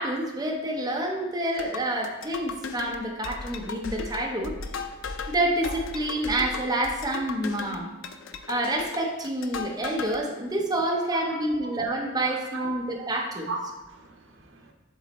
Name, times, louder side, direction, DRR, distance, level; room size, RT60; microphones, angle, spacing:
voice 1, 0.0-4.5 5.3-7.9 8.5-13.5, right 1 dB, 20° right, 0 dB, 0.8 m, -28 dB
sound 1, 1.5-10.2, left 4 dB, 75° left, 0.5 m, -36 dB
voice 2, 11.1-11.7 12.3-13.1 13.5-14.7, right 3 dB, 75° right, 1 dB, 1.0 m, -37 dB
7.3 x 4.0 x 4.2 m, 1.1 s
head